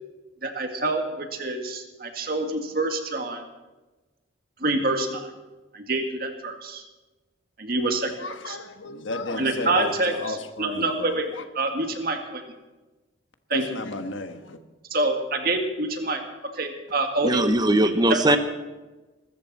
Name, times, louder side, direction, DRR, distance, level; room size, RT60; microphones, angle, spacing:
voice 1, 0.4-3.4 4.6-5.3 5.7-6.8 7.6-8.6 9.4-11.3 11.5-12.4 13.5-13.6 14.9-16.2 16.5-17.4 17.8-18.4, right 2 dB, 50° right, 2.0 m, -26 dB
voice 2, 8.2-11.2 13.5-14.6, left 2 dB, 90° left, 1.4 m, -33 dB
voice 3, 17.2-18.4, right 1 dB, 20° right, 0.9 m, -20 dB
22.5 x 13.5 x 4.2 m
head